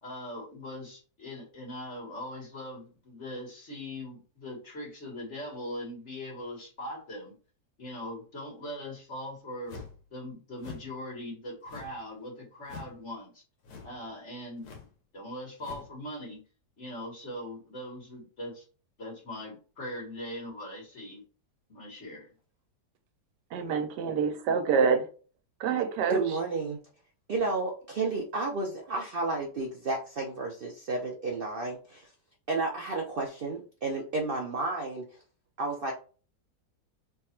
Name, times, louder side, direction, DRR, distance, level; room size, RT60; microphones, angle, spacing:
voice 1, 0.0-7.3 7.8-9.8 10.1-13.4 13.8-14.7 15.1-16.4 16.8-18.6 19.0-21.2 21.7-22.3, left 1 dB, 45° left, 1.5 m, -40 dB
sound 1, 9.7-10.0 10.6-10.9 11.7-12.1 12.6-13.0 13.6-14.0 14.6-14.9 15.6-15.9, left 4 dB, 85° left, 1.4 m, -45 dB
voice 2, 23.5-25.1 25.6-26.2, right 6 dB, 90° right, 1.3 m, -26 dB
voice 3, 26.1-26.8 27.3-32.1 32.5-35.1 35.6-35.9, right 3 dB, 65° right, 0.5 m, -32 dB
3.4 x 2.3 x 4.2 m
omnidirectional pair, 1.8 m